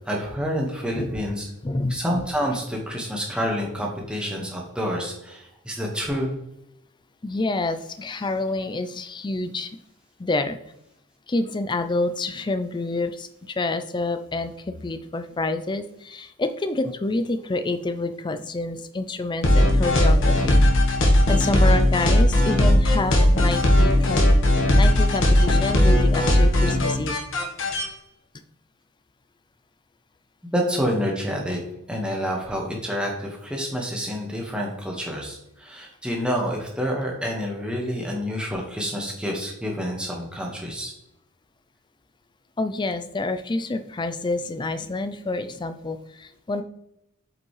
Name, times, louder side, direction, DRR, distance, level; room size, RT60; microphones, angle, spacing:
voice 1, 0.1-1.5 1.9-6.3 30.5-31.6 31.9-40.9, equal, 5° right, -1 dB, 1.4 m, -28 dB
voice 2, 1.6-2.0 7.2-9.8 10.2-10.6 11.3-20.6 21.3-24.4 24.8-27.2 42.6-46.6, left 2 dB, 20° left, 9 dB, 0.4 m, -28 dB
sound 1, 19.4-27.8, left 1 dB, 55° left, 1.4 m, -18 dB
8.2 x 5.1 x 3.2 m, 0.81 s
head